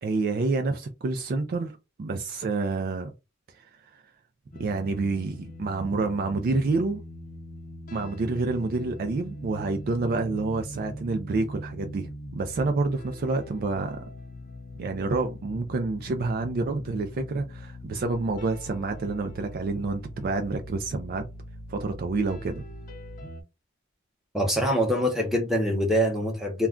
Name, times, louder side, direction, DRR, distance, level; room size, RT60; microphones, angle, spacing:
voice 1, 0.0-3.1 3.5-3.6 3.9-4.0 4.6-7.0 7.9-14.0 14.8-21.2 21.7-22.6, right 3 dB, 45° right, 0.3 m, -28 dB
sound 1, 4.5-23.4, left 1 dB, 40° left, 0.6 m, -42 dB
voice 2, 24.3-26.7, equal, ahead, 0.7 m, -24 dB
2.3 x 2.2 x 3.6 m
head